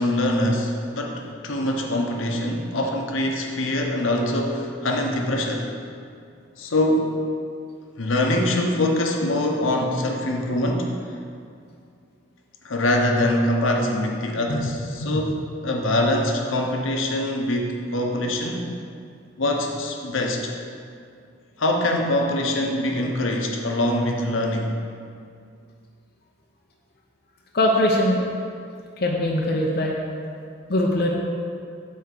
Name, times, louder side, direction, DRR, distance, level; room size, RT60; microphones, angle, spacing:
voice 1, 0.0-5.7 6.6-7.1 8.0-10.9 12.6-18.7 19.4-20.5 21.6-24.7, left 1 dB, 80° left, 1 dB, 0.9 m, -24 dB
voice 2, 27.5-28.2 29.0-30.0 30.7-31.1, left 1 dB, 50° left, -2 dB, 0.7 m, -21 dB
8.5 x 3.5 x 6.7 m, 2.3 s
head